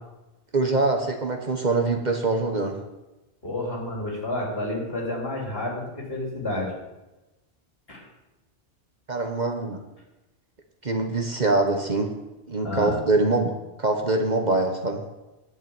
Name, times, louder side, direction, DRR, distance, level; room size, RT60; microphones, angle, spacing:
voice 1, 0.5-2.8 9.1-9.8 10.8-12.1 12.5-15.0, right 2 dB, 40° right, 4 dB, 1.2 m, -24 dB
voice 2, 3.4-6.7 7.9-8.0 12.6-13.0, left 1 dB, 55° left, -2 dB, 3.6 m, -30 dB
11.0 x 6.2 x 8.9 m, 1.0 s
omnidirectional pair, 1.2 m